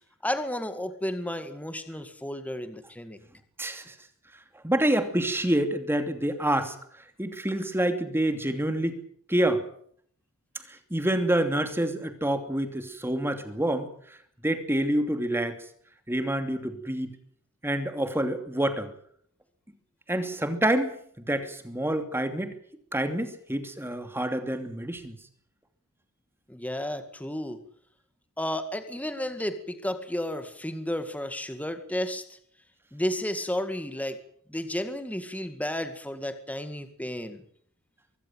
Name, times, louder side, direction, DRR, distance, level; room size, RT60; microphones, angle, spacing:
voice 1, 0.2-3.2 26.5-27.6 28.4-32.4 32.9-34.2 34.5-37.4, left 1 dB, 5° left, 9 dB, 2.0 m, -32 dB
voice 2, 3.6-3.9 4.6-6.7 7.2-9.0 9.3-9.6 10.7-13.9 14.4-15.6 16.1-17.1 17.6-18.9 20.1-22.5 22.9-25.1, right 1 dB, 10° right, 8 dB, 2.8 m, -27 dB
24.5 x 15.0 x 9.2 m, 0.63 s
head